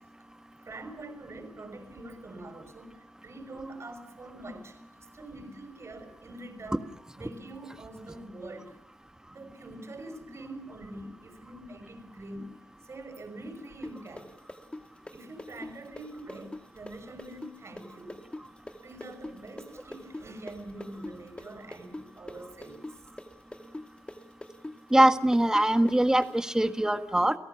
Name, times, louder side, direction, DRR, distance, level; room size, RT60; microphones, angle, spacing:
voice 1, 0.6-6.9 7.2-8.8 9.3-12.5 12.8-14.3 15.1-18.2 18.8-22.8, right 2 dB, 50° right, 8 dB, 6.1 m, -44 dB
sound 1, 13.8-21.5 21.7-26.3, left 1 dB, 20° left, 2.2 m, -42 dB
voice 2, 24.9-27.4, right 1 dB, 10° right, 8 dB, 1.7 m, -22 dB
30.0 x 17.5 x 7.2 m, 0.74 s
cardioid pair, 70°, 6 cm